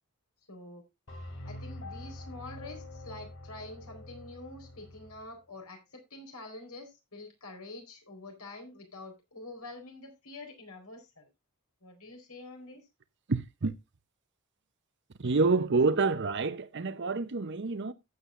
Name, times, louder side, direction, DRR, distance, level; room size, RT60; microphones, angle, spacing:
voice 1, 0.5-0.8 1.4-11.3 11.8-12.9, left 2 dB, 85° left, 4.3 m, -46 dB
sound 1, 1.1-5.3, left 1 dB, 60° left, 3.0 m, -45 dB
voice 2, 13.3-13.7 15.2-17.9, right 3 dB, 55° right, 0.7 m, -27 dB
15.0 x 8.3 x 2.5 m
head